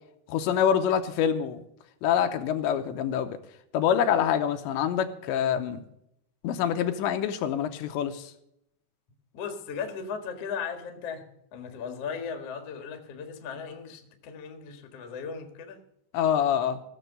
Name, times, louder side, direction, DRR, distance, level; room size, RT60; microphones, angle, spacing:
voice 1, 0.3-1.6 2.0-3.4 3.7-5.8 6.4-8.3 16.1-16.8, left 9 dB, 80° left, 7 dB, 3.1 m, -26 dB
voice 2, 5.2-5.6 9.3-11.3 11.5-15.8, left 6 dB, 55° left, 5 dB, 1.7 m, -37 dB
17.0 x 7.1 x 6.6 m, 0.77 s
omnidirectional pair, 5.3 m